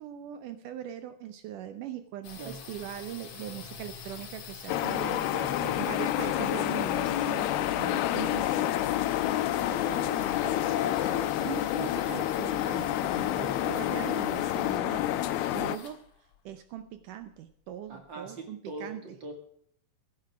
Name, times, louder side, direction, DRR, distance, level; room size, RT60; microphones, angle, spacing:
voice 1, 0.0-5.3 5.8-8.7 11.4-15.2 15.5-16.0 16.5-19.0, right 11 dB, 75° right, 9 dB, 2.0 m, -40 dB
sound 1, 2.2-17.9, left 6 dB, 55° left, 2.6 m, -47 dB
sound 2, 4.7-15.8, left 13 dB, 85° left, 2.6 m, -28 dB
voice 2, 5.3-5.8 9.6-11.4 13.3-13.7 17.9-19.3, right 3 dB, 35° right, 3 dB, 2.3 m, -42 dB
15.5 x 10.5 x 4.8 m, 0.66 s
omnidirectional pair, 4.4 m